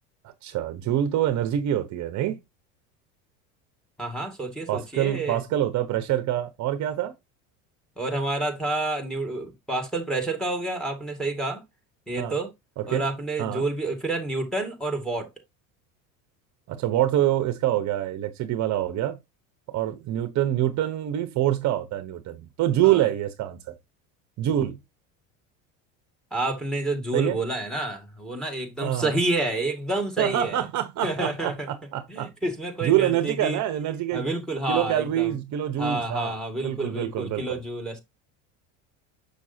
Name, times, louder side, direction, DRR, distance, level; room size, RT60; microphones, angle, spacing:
voice 1, 0.2-2.4 4.7-7.1 12.2-12.4 12.8-13.0 13.4-13.6 16.7-19.2 19.7-23.7 24.4-24.8 27.1-27.4 28.8-29.2 30.2-32.3 32.8-34.2 34.7-36.4 36.6-37.6, right 12 dB, 50° right, 0.9 m, -26 dB
voice 2, 4.0-5.4 8.0-11.6 12.1-12.5 12.9-15.3 22.8-23.0 26.3-30.6 31.0-31.7 32.1-33.6 34.1-35.3 35.8-38.0, right 2 dB, ahead, 2.0 m, -29 dB
6.7 x 6.2 x 2.7 m
supercardioid pair, 110°, 38 cm